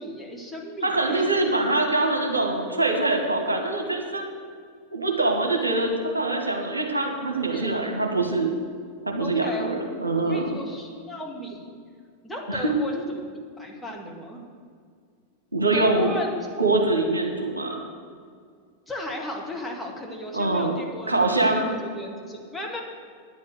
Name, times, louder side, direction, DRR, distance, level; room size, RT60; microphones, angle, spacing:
voice 1, 0.0-1.3 7.5-7.7 9.2-9.7 10.3-11.8 12.2-13.2 13.6-14.4 15.7-16.5 18.9-22.8, equal, 5° left, -2 dB, 2.0 m, -35 dB
voice 2, 0.8-4.3 4.9-8.5 9.0-10.5 12.5-12.7 15.5-16.1 16.6-17.8 20.3-20.8 21.1-21.7, right 2 dB, 80° right, 3 dB, 1.3 m, -24 dB
9.8 x 7.3 x 8.0 m, 2.1 s
figure-of-eight pair, 90°, 0 cm